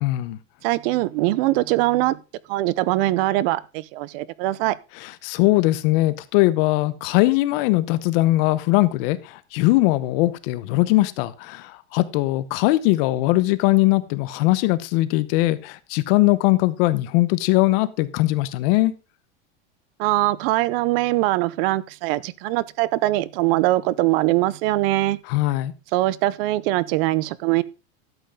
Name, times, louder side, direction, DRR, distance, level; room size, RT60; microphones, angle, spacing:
voice 1, 0.0-0.4 5.0-18.9 25.3-25.7, left 18 dB, 55° left, 0.9 m, -20 dB
voice 2, 0.6-2.2 2.5-4.8 20.0-25.2 25.9-27.6, right 17 dB, 55° right, 0.8 m, -22 dB
12.5 x 7.9 x 3.7 m
supercardioid pair, 150°, 34 cm